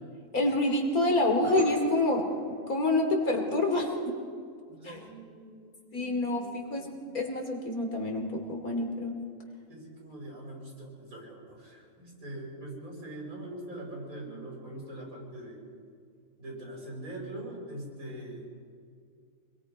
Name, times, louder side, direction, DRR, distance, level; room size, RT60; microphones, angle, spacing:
voice 1, 0.3-4.1 4.8-5.0 5.9-6.9 7.1-9.1, left 2 dB, 90° left, 3 dB, 3.2 m, -27 dB
sound 1, 1.0-3.3, right 3 dB, 10° right, 6.3 m, -39 dB
voice 2, 4.7-7.1 9.7-15.6 16.4-18.5, right 1 dB, 75° right, -2 dB, 6.6 m, -43 dB
26.0 x 21.5 x 5.2 m, 2.2 s
omnidirectional pair, 1.5 m